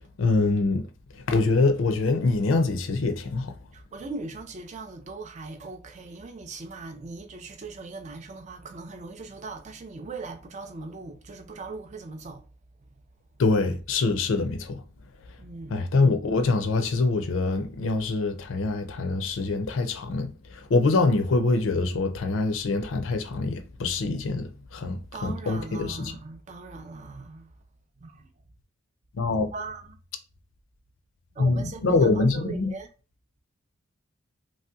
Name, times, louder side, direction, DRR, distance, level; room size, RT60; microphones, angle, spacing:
voice 1, 0.2-0.8 1.3-3.5 13.4-14.8 15.7-20.3 20.7-26.1 29.2-29.5 31.4-32.7, left 3 dB, 70° left, 0.4 m, -24 dB
voice 2, 3.9-12.4 15.4-15.9 25.1-27.5 28.0-28.1 29.4-29.9 31.4-32.9, right 3 dB, 35° right, 0.4 m, -39 dB
3.1 x 2.8 x 2.3 m
head